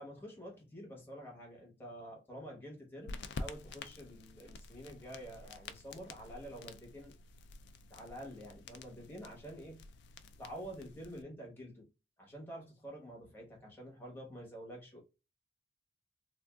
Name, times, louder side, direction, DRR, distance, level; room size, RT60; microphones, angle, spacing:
voice 1, 0.0-7.1 7.9-9.8 10.4-11.9 12.2-15.0, equal, 10° left, 1.0 m, -48 dB
sound 1, 3.1-11.2, left 3 dB, 55° left, 0.3 m, -49 dB
3.4 x 2.4 x 2.2 m
head